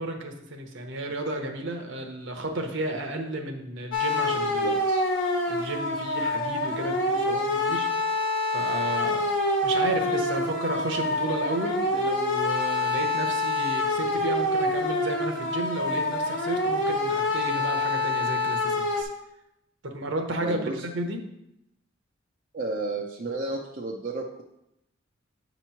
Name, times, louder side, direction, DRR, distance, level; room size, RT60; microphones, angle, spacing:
voice 1, 0.0-4.8 5.5-7.9 8.5-9.3 9.6-19.1 19.8-21.2, right 2 dB, 60° right, 4 dB, 0.9 m, -33 dB
sound 1, 3.9-19.0, left 2 dB, 65° left, 1.1 m, -26 dB
voice 2, 4.6-5.0 20.4-20.8 22.5-24.4, right 2 dB, 40° right, -2 dB, 0.5 m, -32 dB
8.1 x 3.0 x 5.6 m, 0.83 s
head